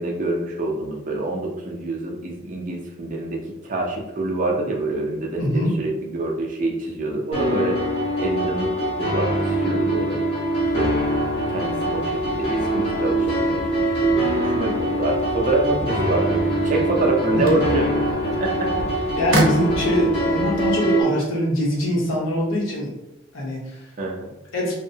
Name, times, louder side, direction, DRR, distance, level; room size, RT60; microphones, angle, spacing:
voice 1, 0.0-7.8 8.2-10.2 10.7-11.0 11.5-17.9 18.3-18.9 24.0-24.3, right 2 dB, 40° right, 0 dB, 0.4 m, -26 dB
voice 2, 5.4-5.7 19.2-22.9 23.3-23.8 24.5-24.7, left 1 dB, 85° left, -3 dB, 0.9 m, -23 dB
sound 1, 7.3-21.0, right 1 dB, 30° left, 0.8 m, -23 dB
sound 2, 10.6-20.7, equal, 50° left, 0.4 m, -38 dB
sound 3, 16.4-22.6, right 1 dB, 75° right, 0.7 m, -31 dB
2.7 x 2.0 x 2.7 m, 0.92 s
head